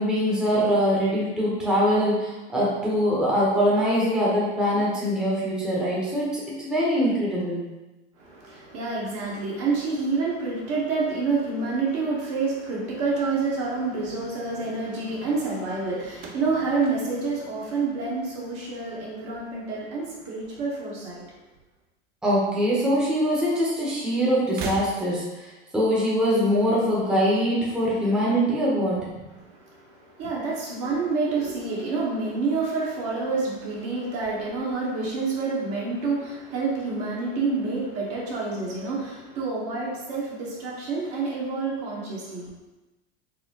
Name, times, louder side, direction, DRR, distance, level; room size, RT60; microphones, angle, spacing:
voice 1, 0.0-7.6 22.2-29.0, equal, 5° right, -7 dB, 0.9 m, -23 dB
voice 2, 8.2-21.2 29.4-42.5, right 4 dB, 50° right, -4 dB, 1.1 m, -28 dB
sound 1, 16.1-18.5 18.8-19.4 20.4-21.4 21.7-21.8 22.9-23.0 24.4-25.4, right 4 dB, 30° right, 0.5 m, -40 dB
4.1 x 2.1 x 2.9 m, 1.1 s
hypercardioid pair, 100°, 30 cm